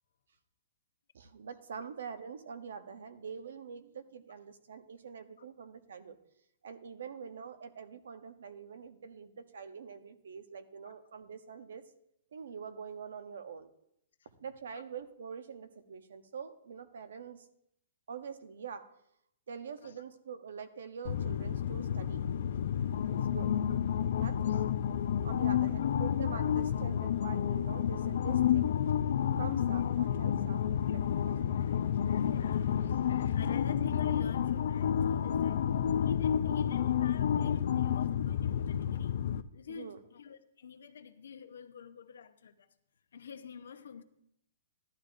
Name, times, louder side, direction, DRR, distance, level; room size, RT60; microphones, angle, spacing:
voice 1, 1.1-6.2 6.6-11.8 12.3-13.7 14.4-17.4 18.1-18.9 19.5-22.3 23.1-23.6 24.1-24.4 25.2-28.8 29.4-30.6 30.9-31.6 39.7-40.0, right 6 dB, 80° right, 0.9 m, -45 dB
sound 1, 21.0-39.4, left 9 dB, 65° left, 0.4 m, -30 dB
voice 2, 31.2-39.2 39.5-42.7 43.1-44.0, left 7 dB, 85° left, 0.9 m, -46 dB
13.5 x 11.5 x 2.6 m
hypercardioid pair, 160°, 0 cm